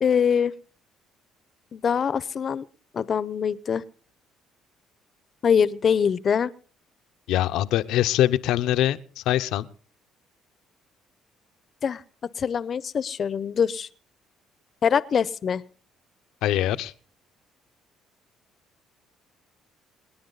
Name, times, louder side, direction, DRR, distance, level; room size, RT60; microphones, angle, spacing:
voice 1, 0.0-0.5 1.7-2.6 2.9-3.8 5.4-6.5 11.8-12.0 12.4-13.9 14.8-15.6, left 7 dB, 45° left, 18 dB, 0.8 m, -23 dB
voice 2, 7.3-9.7 16.4-16.9, left 13 dB, 80° left, 12 dB, 0.8 m, -23 dB
27.5 x 10.5 x 4.0 m, 0.41 s
cardioid pair, 100°, 0 cm